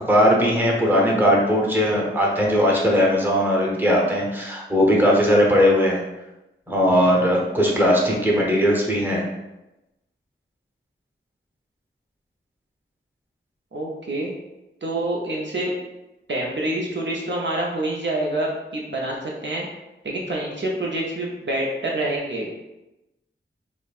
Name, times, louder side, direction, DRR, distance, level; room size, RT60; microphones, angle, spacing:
voice 1, 0.0-6.0 6.7-9.3, equal, 10° right, -2 dB, 0.9 m, -19 dB
voice 2, 13.7-14.3 14.8-15.7 16.3-19.7 20.0-22.6, right 1 dB, 60° right, -2 dB, 0.6 m, -27 dB
5.0 x 2.1 x 2.4 m, 0.97 s
wide cardioid pair, 45°, 21 cm